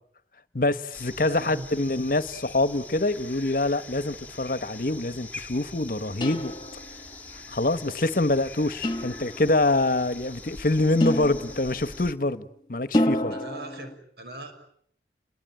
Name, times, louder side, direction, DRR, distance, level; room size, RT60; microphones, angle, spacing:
voice 1, 0.5-6.5 7.5-13.4, left 2 dB, 50° left, 1.1 m, -25 dB
sound 1, 0.9-12.1, left 3 dB, 10° left, 1.5 m, -44 dB
voice 2, 1.2-1.7 13.3-14.5, right 1 dB, 70° right, 6.2 m, -40 dB
sound 2, 6.2-7.1 8.8-9.7 11.0-12.1 12.9-13.9, left 1 dB, 25° left, 1.5 m, -28 dB
29.5 x 22.0 x 8.9 m
head